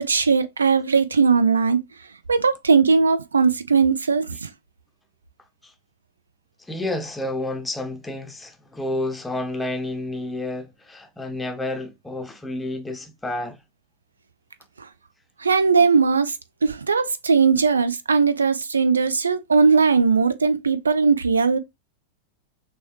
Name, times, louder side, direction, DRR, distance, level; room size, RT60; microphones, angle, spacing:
voice 1, 0.0-1.8 2.3-4.5 14.8-14.9 15.4-16.4 16.6-21.6, right 5 dB, 75° right, 0.5 m, -19 dB
voice 2, 6.7-13.6, left 2 dB, 5° left, 0.7 m, -30 dB
6.1 x 2.3 x 3.0 m
figure-of-eight pair, 90°, 0 cm